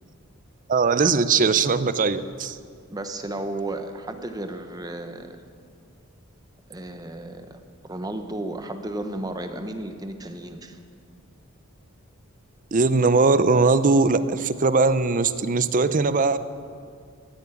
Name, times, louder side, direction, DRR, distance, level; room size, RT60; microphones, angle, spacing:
voice 1, 0.7-2.6 12.7-16.4, right 4 dB, 40° right, 13 dB, 0.6 m, -20 dB
voice 2, 2.9-5.4 6.7-7.6 7.8-10.8, right 1 dB, 20° right, 7 dB, 1.0 m, -33 dB
16.5 x 8.4 x 9.9 m, 2.2 s
head